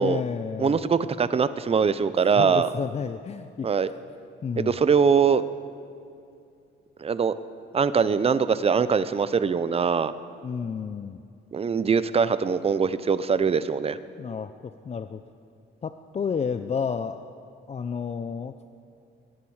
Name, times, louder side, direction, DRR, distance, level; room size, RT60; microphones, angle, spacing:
voice 1, 0.0-0.8 2.3-3.9 4.4-4.8 10.4-11.2 14.2-15.2 15.8-17.3 17.7-18.7, left 6 dB, 35° left, 10 dB, 0.5 m, -31 dB
voice 2, 0.6-2.7 3.6-3.9 4.6-5.4 7.0-7.3 7.7-10.1 11.5-14.0, right 6 dB, 30° right, 14 dB, 0.6 m, -22 dB
23.0 x 10.0 x 4.8 m, 2.6 s
cardioid pair, 90°, 20 cm